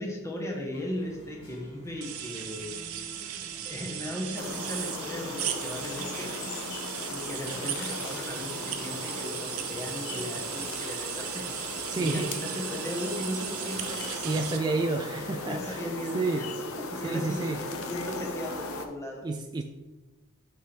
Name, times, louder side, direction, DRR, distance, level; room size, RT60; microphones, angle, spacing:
voice 1, 0.0-2.7 3.6-6.4 7.1-11.5 12.0-14.0 15.4-16.5 16.9-19.3, left 1 dB, 15° left, 0 dB, 1.1 m, -37 dB
sound 1, 0.7-18.8, equal, 50° left, 2.2 m, -49 dB
sound 2, 2.0-14.6, right 10 dB, 75° right, 0.6 m, -37 dB
sound 3, 4.4-18.9, left 3 dB, 65° left, 0.7 m, -38 dB
voice 2, 11.9-12.3 14.2-15.8 16.1-16.4 17.0-17.6 19.2-19.6, right 3 dB, 20° right, 3 dB, 0.3 m, -29 dB
6.5 x 5.7 x 3.3 m, 1.1 s
head